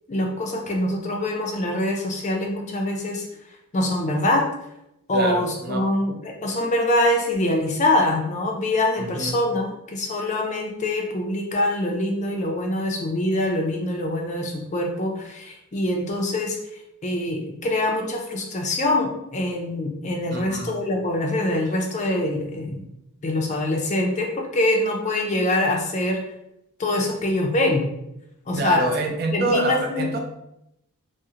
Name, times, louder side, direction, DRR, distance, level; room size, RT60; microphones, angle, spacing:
voice 1, 0.1-3.2 3.7-4.5 5.1-16.6 17.0-22.9 23.2-26.2 26.8-27.9 28.5-28.9 29.3-30.2, left 1 dB, 30° left, 1 dB, 0.4 m, -24 dB
voice 2, 5.1-5.8 9.0-9.4 20.3-20.7 28.6-30.2, right 2 dB, 45° right, 3 dB, 0.4 m, -26 dB
3.6 x 2.0 x 2.7 m, 0.83 s
head